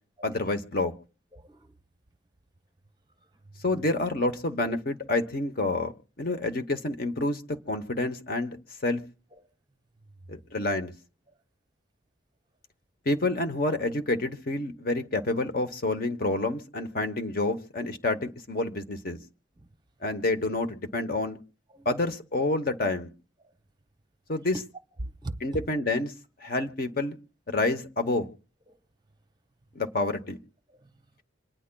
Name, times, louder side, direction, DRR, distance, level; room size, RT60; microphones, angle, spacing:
voice 1, 0.2-0.9 3.6-5.9 6.2-7.4 7.7-8.6 8.8-9.0 10.3-10.9 13.1-19.2 20.0-21.4 21.8-23.1 24.3-24.6 25.4-26.1 26.4-27.1 27.5-28.3 29.7-30.4, left 2 dB, 50° left, 0.9 m, -28 dB
voice 2, 1.3-1.8 3.4-3.6 4.6-4.7 6.3-6.4 9.3-9.5 19.6-19.7 21.7-22.0 23.4-23.5 25.0-25.6 28.7-28.8 30.7-31.0, right 1 dB, 20° right, 0.7 m, -42 dB
27.0 x 9.9 x 2.2 m
head